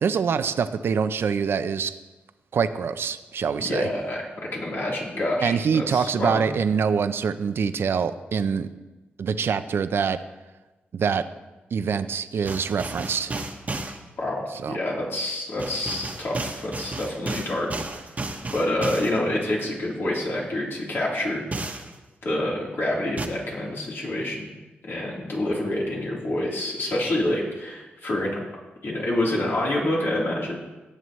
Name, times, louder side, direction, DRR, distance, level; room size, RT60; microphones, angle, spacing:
voice 1, 0.0-1.9 2.5-3.9 5.4-8.7 9.2-10.2 10.9-11.2 11.7-13.3 14.6-14.8, right 6 dB, 70° right, 11 dB, 0.5 m, -25 dB
voice 2, 3.6-4.2 4.5-6.5 14.2-17.7 18.5-21.4 22.2-24.5 24.8-28.4 28.8-30.6, left 1 dB, 70° left, -4 dB, 3.6 m, -27 dB
sound 1, 12.4-14.0 15.6-19.2 21.5-21.9 23.2-23.3, right 2 dB, 40° right, 1.1 m, -32 dB
17.5 x 7.7 x 3.2 m, 1.2 s
cardioid pair, 75°, 4 cm